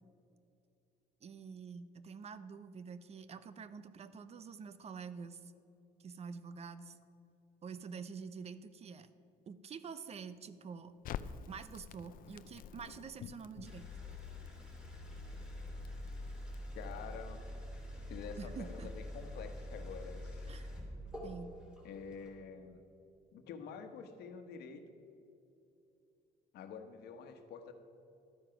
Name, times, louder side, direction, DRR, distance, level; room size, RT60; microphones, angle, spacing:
voice 1, 1.2-5.5 6.0-7.0 7.6-9.1 9.5-11.0 11.5-13.9 18.4-18.9 20.5-20.7 21.2-21.6, right 6 dB, 40° right, 13 dB, 0.6 m, -47 dB
Crackle, 11.0-17.2, left 8 dB, 55° left, 0.5 m, -49 dB
sound 1, 13.6-22.3, left 1 dB, 5° right, 3.0 m, -45 dB
voice 2, 16.7-17.5 18.1-20.5 21.8-22.8 23.3-24.8 26.5-27.7, left 6 dB, 75° left, 7 dB, 1.2 m, -48 dB
12.5 x 9.0 x 5.9 m, 2.7 s
cardioid pair, 110°, 17 cm